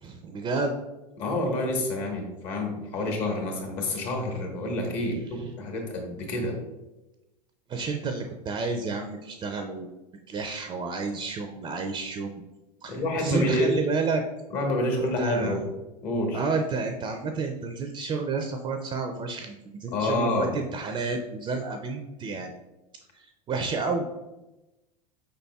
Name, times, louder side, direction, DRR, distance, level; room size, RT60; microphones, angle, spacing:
voice 1, 0.0-0.7 7.7-9.9 10.3-12.3 12.8-14.2 15.2-15.6 16.3-19.6 19.8-22.5 23.1-24.0, right 4 dB, 25° right, 5 dB, 0.4 m, -30 dB
voice 2, 1.2-6.6 12.9-13.8 14.5-15.7 16.0-16.4 19.9-20.5, left 1 dB, 55° left, 2 dB, 1.3 m, -28 dB
5.0 x 4.1 x 2.3 m, 1.0 s
hypercardioid pair, 90°, 20 cm